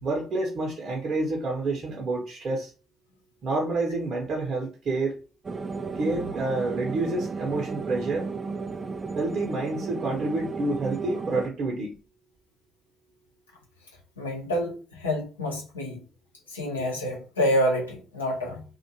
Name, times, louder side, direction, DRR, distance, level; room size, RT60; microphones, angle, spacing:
voice 1, 0.0-2.7 3.4-5.2 5.9-8.3 9.1-11.9, right 2 dB, 50° right, 0.7 m, -28 dB
sound 1, 5.4-11.5, right 4 dB, 30° right, 0.3 m, -34 dB
voice 2, 14.2-16.0 16.5-18.6, equal, 90° left, 0.6 m, -28 dB
2.5 x 2.2 x 2.7 m
figure-of-eight pair, 45°, 0 cm